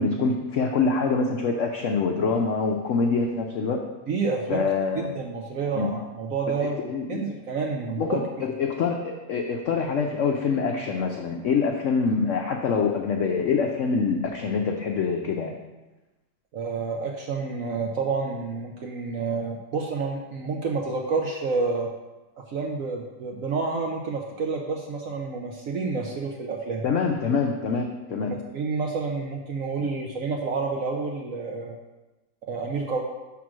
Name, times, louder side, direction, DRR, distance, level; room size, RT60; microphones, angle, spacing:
voice 1, 0.0-3.8 4.5-5.1 5.8-5.9 6.9-7.2 8.0-15.5 26.8-28.3 29.8-29.9, left 5 dB, 85° left, 2 dB, 0.6 m, -25 dB
voice 2, 4.1-8.2 16.5-21.9 22.5-26.8 28.1-31.8 32.5-33.0, right 4 dB, 70° right, 0 dB, 0.8 m, -29 dB
6.2 x 3.7 x 6.0 m, 1.1 s
omnidirectional pair, 2.0 m